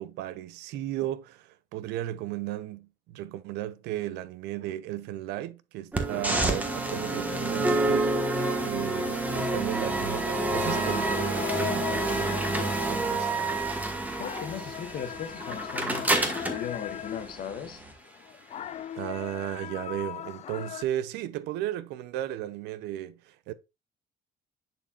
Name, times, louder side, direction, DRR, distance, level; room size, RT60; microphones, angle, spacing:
voice 1, 0.0-8.1 8.6-13.3 18.9-23.5, right 13 dB, 85° right, 0.6 m, -35 dB
sound 1, 5.9-17.9, right 2 dB, 10° right, 1.3 m, -29 dB
sound 2, 10.6-17.7 18.1-20.8, left 10 dB, 45° left, 0.4 m, -38 dB
voice 2, 14.2-17.8, left 8 dB, 65° left, 1.2 m, -38 dB
10.0 x 4.4 x 2.4 m
cardioid pair, 110°, 17 cm